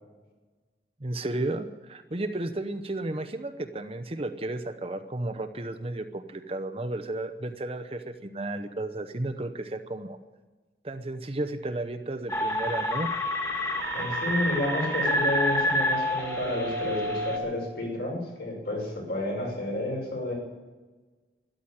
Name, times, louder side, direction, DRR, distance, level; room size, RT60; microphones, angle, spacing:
voice 1, 1.0-10.2 10.8-13.1, right 2 dB, 30° right, 8 dB, 0.8 m, -33 dB
sound 1, 12.3-17.4, equal, 20° left, 2.1 m, -28 dB
voice 2, 13.9-20.3, left 1 dB, 65° left, -1 dB, 6.1 m, -30 dB
13.0 x 11.5 x 9.0 m, 1.3 s
head